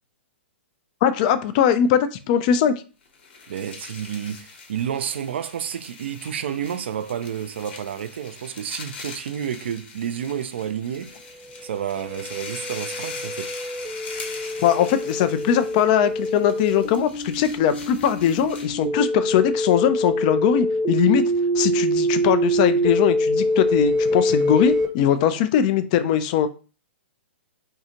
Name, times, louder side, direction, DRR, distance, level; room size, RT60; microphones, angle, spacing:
voice 1, 1.0-2.7 14.6-21.2 21.6-26.5, left 9 dB, 40° left, 0.3 m, -20 dB
sound 1, 3.1-18.8, left 4 dB, 55° left, 1.0 m, -41 dB
voice 2, 3.5-11.1 11.6-13.5, right 9 dB, 65° right, 0.3 m, -30 dB
sound 2, 11.6-24.9, equal, 25° right, 0.7 m, -25 dB
2.6 x 2.3 x 2.8 m
figure-of-eight pair, 115°, 7 cm